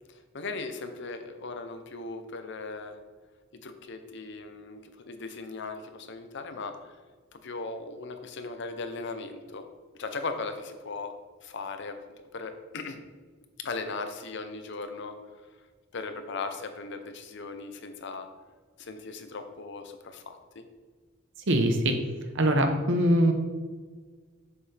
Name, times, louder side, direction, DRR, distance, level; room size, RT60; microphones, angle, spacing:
voice 1, 0.0-3.0 3.6-7.0 7.3-9.6 9.9-11.1 11.4-12.0 12.3-13.0 13.6-15.1 15.9-18.3 18.8-20.6, left 3 dB, 60° left, 7 dB, 0.7 m, -38 dB
voice 2, 21.5-22.0 22.3-23.3, right 1 dB, 65° right, 5 dB, 0.9 m, -22 dB
7.1 x 6.9 x 3.4 m, 1.5 s
head